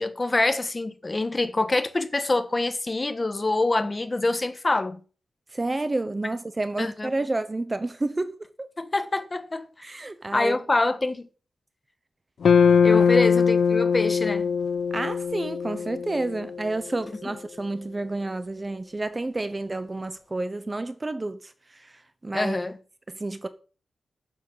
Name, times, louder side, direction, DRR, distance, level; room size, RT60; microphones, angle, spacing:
voice 1, 0.0-5.0 6.8-7.1 8.8-9.7 10.3-11.3 12.8-14.5 17.2-17.3 22.3-22.8, left 2 dB, 20° left, 1.4 m, -25 dB
voice 2, 5.5-8.7 9.8-10.6 12.9-13.1 14.9-22.6 23.1-23.5, right 2 dB, 20° right, 0.9 m, -30 dB
sound 1, 12.4-16.8, left 6 dB, 60° left, 0.7 m, -21 dB
11.5 x 7.4 x 7.4 m
wide cardioid pair, 160°, 0 cm